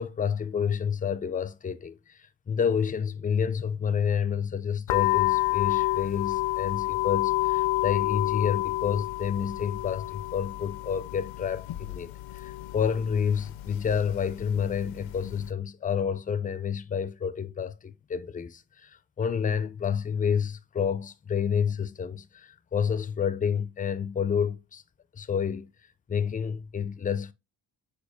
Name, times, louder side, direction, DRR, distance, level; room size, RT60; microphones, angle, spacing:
voice 1, 0.0-24.8 25.1-25.7 26.1-27.3, left 7 dB, 20° left, 0.4 m, -29 dB
sound 1, 4.9-15.5, left 18 dB, 70° left, 0.5 m, -29 dB
6.4 x 2.3 x 3.5 m
cardioid pair, 75°, 49 cm